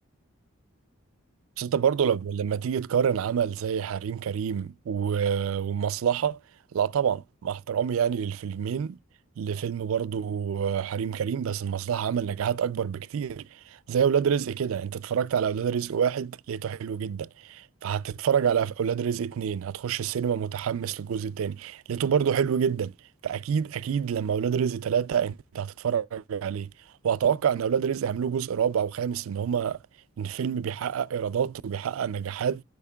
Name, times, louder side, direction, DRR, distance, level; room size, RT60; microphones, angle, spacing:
voice 1, 1.6-6.4 6.7-9.0 9.4-22.9 23.2-26.7 27.0-29.8 30.2-32.6, right 7 dB, 75° right, 0.3 m, -27 dB
12.0 x 5.1 x 2.2 m
head